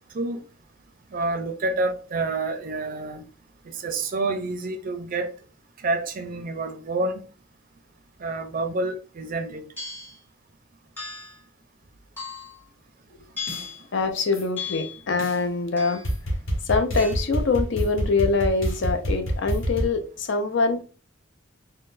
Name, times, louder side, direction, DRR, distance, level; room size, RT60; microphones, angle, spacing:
voice 1, 1.1-3.2 3.7-5.3 5.8-7.2 8.2-9.6, right 2 dB, 45° right, 0.4 m, -28 dB
sound 1, 9.8-10.2 11.0-11.4 12.2-12.6 13.4-13.8 14.6-15.0 15.8-16.2 17.0-17.1, left 5 dB, 10° left, 1.4 m, -35 dB
sound 2, 13.5-13.6 14.3-14.4 15.2-15.4 16.0-19.9, equal, 80° left, 1.1 m, -27 dB
voice 2, 13.9-16.0 16.7-20.8, left 4 dB, 65° left, 0.5 m, -24 dB
3.9 x 2.0 x 2.5 m
head